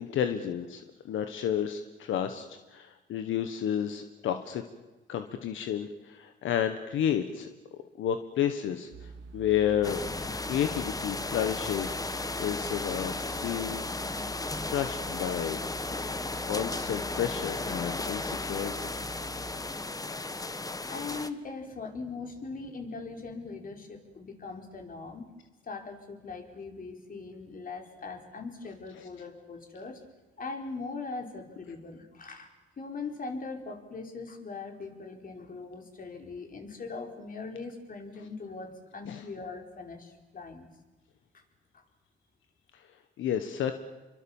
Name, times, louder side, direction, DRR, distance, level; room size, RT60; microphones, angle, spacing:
voice 1, 0.0-4.7 5.1-7.5 8.0-10.0 10.5-13.8 14.7-15.6 16.5-18.9 29.0-29.1 39.0-39.2 42.7-42.8 43.2-43.7, left 9 dB, 80° left, 8 dB, 1.5 m, -31 dB
sound 1, 8.9-19.6, right 2 dB, 75° right, 2.1 m, -46 dB
sound 2, 9.8-21.3, left 2 dB, 20° left, 1.4 m, -35 dB
voice 2, 20.9-25.2 25.6-30.0 30.4-40.7 41.3-41.4 41.7-41.8, left 4 dB, 45° left, 4 dB, 4.6 m, -40 dB
27.5 x 23.5 x 7.3 m, 1.1 s
cardioid pair, 90°, 20 cm